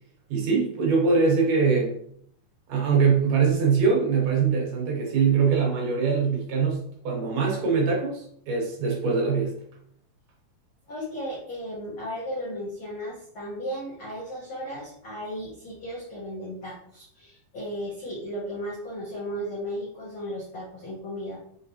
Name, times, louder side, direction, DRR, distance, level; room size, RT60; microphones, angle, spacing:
voice 1, 0.3-2.0 2.7-9.5, right 5 dB, 70° right, -1 dB, 2.1 m, -23 dB
voice 2, 10.9-21.4, equal, 75° left, -7 dB, 1.1 m, -35 dB
5.3 x 3.2 x 2.7 m, 0.66 s
omnidirectional pair, 4.1 m